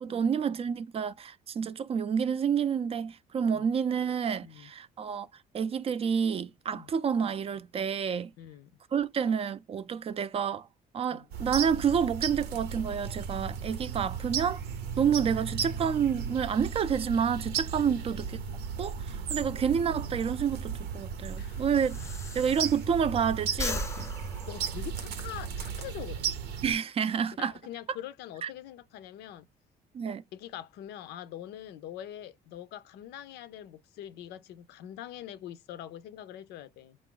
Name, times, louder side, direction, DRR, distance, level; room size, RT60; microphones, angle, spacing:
voice 1, 0.0-5.3 5.5-8.3 8.9-10.7 10.9-14.6 15.0-18.2 18.8-22.0 22.3-24.1 26.6-27.5 28.4-28.5 29.9-30.2, right 7 dB, 35° right, 0.4 m, -29 dB
voice 2, 4.4-4.7 6.7-6.9 8.4-8.7 11.1-11.3 17.8-18.0 21.4-21.7 22.0-22.2 24.5-26.3 27.4-29.5 30.3-37.0, left 11 dB, 80° left, 0.5 m, -44 dB
sound 1, 11.3-26.7, right 6 dB, 80° right, 0.7 m, -35 dB
Breathing, 20.4-23.2 23.5-25.4, left 3 dB, 15° left, 0.5 m, -38 dB
3.9 x 2.5 x 3.7 m
cardioid pair, 110°, 17 cm